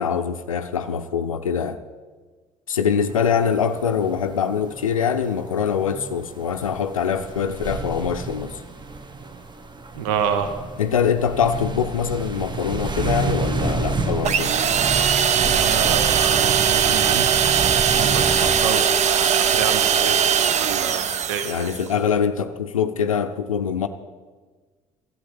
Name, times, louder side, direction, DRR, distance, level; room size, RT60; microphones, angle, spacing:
voice 1, 0.0-1.8 2.7-8.6 10.8-14.5 21.4-23.9, left 7 dB, 85° left, 9 dB, 0.5 m, -23 dB
sound 1, 3.1-18.6, right 3 dB, 25° right, 1.2 m, -30 dB
voice 2, 9.9-10.5 15.5-20.2 20.7-21.7, right 7 dB, 70° right, 8 dB, 0.9 m, -28 dB
sound 2, 14.2-21.9, right 8 dB, 45° right, 0.8 m, -20 dB
12.5 x 7.9 x 8.6 m, 1.4 s
figure-of-eight pair, 50°, 17 cm